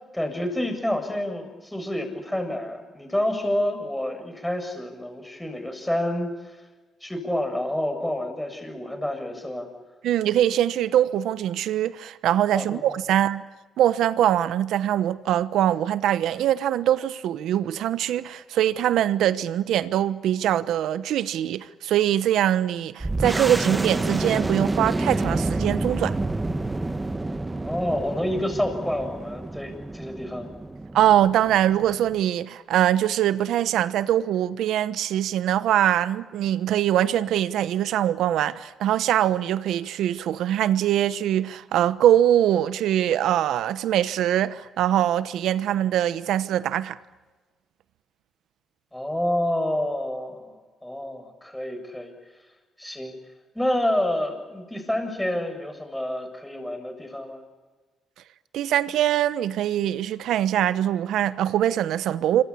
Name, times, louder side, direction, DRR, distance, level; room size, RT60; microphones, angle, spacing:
voice 1, 0.1-6.6 7.0-9.7 12.5-13.0 27.6-30.5 48.9-52.1 52.8-53.1 53.5-57.4, left 1 dB, 5° left, 7.6 m, -28 dB
voice 2, 10.0-13.4 13.8-26.2 30.9-47.0 58.5-62.4, right 11 dB, 80° right, 1.1 m, -23 dB
sound 1, 23.0-32.2, right 2 dB, 20° right, 1.5 m, -28 dB
26.5 x 25.0 x 8.6 m
cardioid pair, 70°, 0 cm